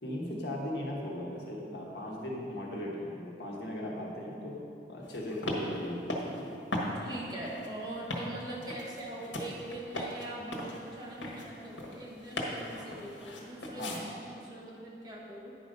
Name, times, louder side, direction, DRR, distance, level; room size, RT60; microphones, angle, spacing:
voice 1, 0.0-4.6 4.9-6.6 13.7-14.0, left 1 dB, 65° left, -3 dB, 1.4 m, -38 dB
sound 1, 5.0-14.0, left 1 dB, 90° left, 1.3 m, -38 dB
voice 2, 7.0-15.5, right 1 dB, 20° right, -3 dB, 1.0 m, -42 dB
9.8 x 4.9 x 5.2 m, 2.6 s
head